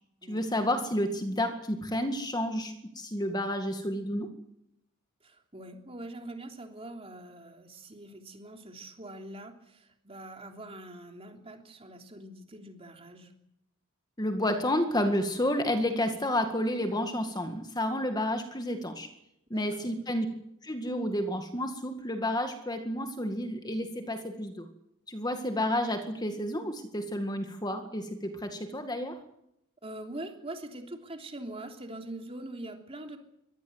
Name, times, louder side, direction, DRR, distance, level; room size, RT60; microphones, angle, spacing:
voice 1, 0.3-4.3 14.2-19.1 19.5-20.3 20.6-24.7 25.1-29.2, left 1 dB, 20° left, 6 dB, 2.0 m, -30 dB
voice 2, 5.2-13.3 19.5-19.9 29.8-33.2, right 1 dB, 25° right, 4 dB, 3.3 m, -43 dB
24.5 x 18.5 x 8.1 m, 0.79 s
head